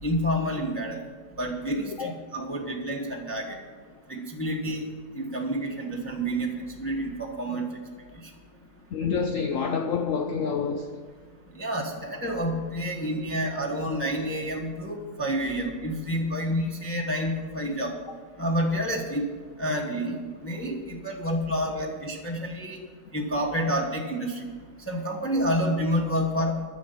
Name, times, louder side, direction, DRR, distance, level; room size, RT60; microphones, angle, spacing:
voice 1, 0.0-1.0 1.4-3.6 4.1-4.9 5.1-7.7 11.5-18.0 18.4-19.2 19.6-20.2 20.4-22.8 23.1-24.4 24.9-26.6, equal, 10° left, 1.1 m, -29 dB
voice 2, 8.9-11.0 13.2-13.4 21.8-21.9, left 5 dB, 65° left, 0.9 m, -28 dB
9.6 x 6.9 x 9.1 m
omnidirectional pair, 1.7 m